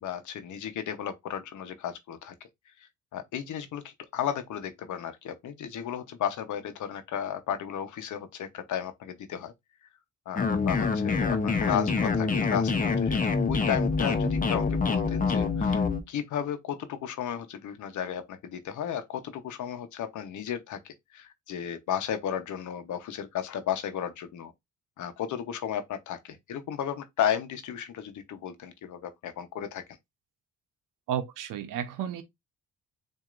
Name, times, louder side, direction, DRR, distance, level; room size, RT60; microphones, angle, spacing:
voice 1, 0.0-2.3 3.1-9.5 10.3-13.2 13.5-15.8 16.1-24.5 25.0-29.8, left 9 dB, 65° left, 1.0 m, -34 dB
sound 1, 10.4-16.0, left 4 dB, 25° left, 0.8 m, -26 dB
voice 2, 31.1-32.2, right 9 dB, 85° right, 0.9 m, -32 dB
7.4 x 2.8 x 2.5 m
supercardioid pair, 75°, 32 cm